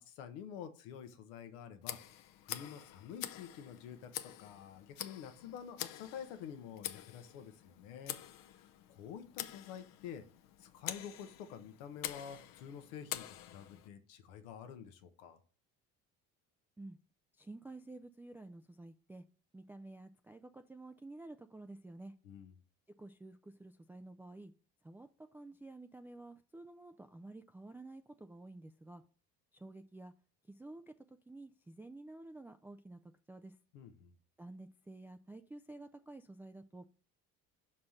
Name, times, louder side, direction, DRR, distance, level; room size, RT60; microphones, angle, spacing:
voice 1, 0.0-2.0 2.4-4.1 4.4-8.2 8.5-10.3 10.6-15.4 22.2-22.5 33.7-34.2, left 8 dB, 90° left, 1.1 m, -49 dB
Tick, 1.8-13.9, left 12 dB, 65° left, 0.7 m, -47 dB
voice 2, 17.4-19.2 19.5-22.1 23.0-24.5 24.8-29.0 29.5-30.1 30.5-30.9 31.3-33.0 33.3-33.5 34.4-36.8, right 2 dB, 5° right, 0.3 m, -51 dB
5.7 x 4.4 x 6.4 m
supercardioid pair, 80°, 36 cm